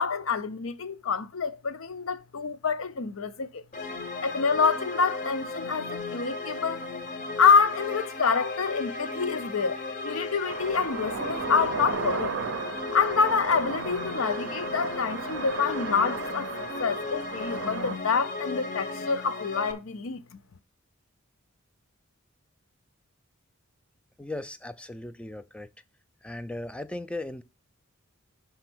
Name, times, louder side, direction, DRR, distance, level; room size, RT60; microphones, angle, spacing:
voice 1, 0.0-3.6 4.2-6.8 7.4-9.8 10.0-12.4 12.9-16.5 16.8-20.2, left 5 dB, 70° left, 0.7 m, -26 dB
sound 1, 3.7-19.7, left 3 dB, 35° left, 0.8 m, -36 dB
sound 2, 10.5-18.0, right 5 dB, 60° right, 0.5 m, -35 dB
voice 2, 24.2-25.7 26.2-27.4, left 1 dB, 5° left, 0.3 m, -37 dB
5.7 x 4.3 x 6.0 m
head